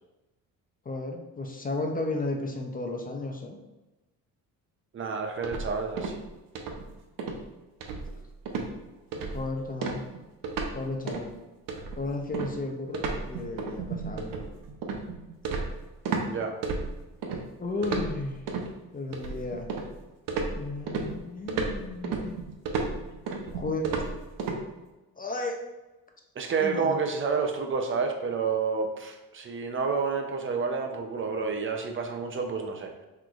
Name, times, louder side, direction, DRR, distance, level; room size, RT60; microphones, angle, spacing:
voice 1, 0.9-3.6 9.1-10.0 10.7-11.3 12.0-14.4 17.6-18.4 18.9-19.7 20.6-22.4 23.5-23.9 25.2-25.6 26.6-27.0, left 2 dB, 25° left, 2 dB, 0.5 m, -33 dB
voice 2, 4.9-6.2 16.2-16.5 26.4-32.9, right 5 dB, 35° right, 4 dB, 0.5 m, -29 dB
sound 1, 5.4-6.3 6.5-6.9 7.2-7.4 7.8-8.2 8.5-8.7 9.1-9.5 9.8-10.8 11.1-11.3 11.7-16.3 16.6-17.4 17.8-18.7 19.1-20.0 20.3-24.6, right 4 dB, 65° right, 0.7 m, -32 dB
5.9 x 3.1 x 2.3 m, 1.1 s
cardioid pair, 110°, 36 cm